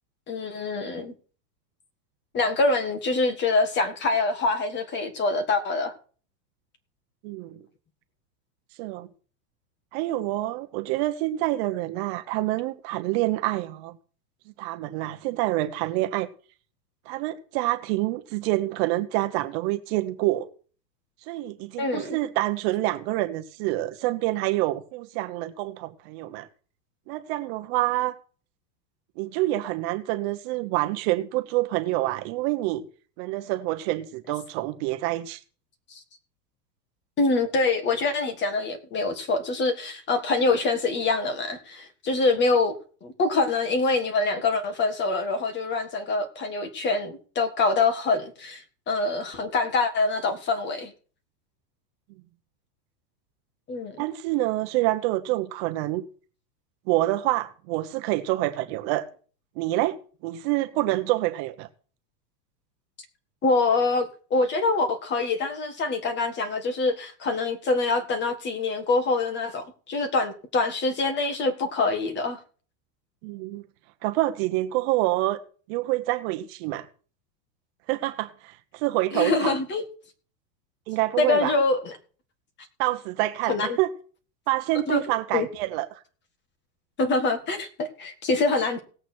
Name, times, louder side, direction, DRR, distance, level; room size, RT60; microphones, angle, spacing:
voice 1, 0.3-1.1 2.3-5.9 21.8-22.2 35.9-36.0 37.2-42.7 43.0-50.9 53.7-54.0 63.4-72.4 79.1-79.8 81.2-81.9 83.5-83.8 84.9-85.0 85.3-85.5 87.0-88.8, left 3 dB, 20° left, 1.7 m, -25 dB
voice 2, 7.2-7.6 8.8-9.1 9.9-14.0 14.6-16.3 17.1-20.5 21.3-26.5 27.1-28.1 29.2-32.8 33.2-35.4 54.0-56.0 56.9-59.1 59.6-60.0 60.2-61.7 73.2-73.6 74.0-75.4 75.7-76.9 77.9-79.5 80.9-81.5 82.8-83.9 84.5-85.9, right 17 dB, 40° right, 1.1 m, -27 dB
18.0 x 8.1 x 4.5 m
supercardioid pair, 150°, 48 cm